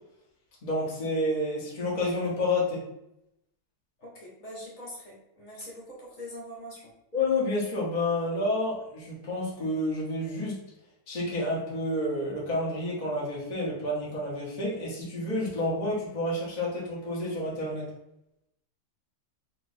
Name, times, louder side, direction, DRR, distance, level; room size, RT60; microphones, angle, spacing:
voice 1, 0.6-2.8 7.1-10.6 11.1-17.9, left 1 dB, 65° left, -6 dB, 0.4 m, -29 dB
voice 2, 4.0-6.9, equal, 50° left, -5 dB, 1.1 m, -43 dB
3.2 x 2.7 x 3.2 m, 0.84 s
omnidirectional pair, 2.4 m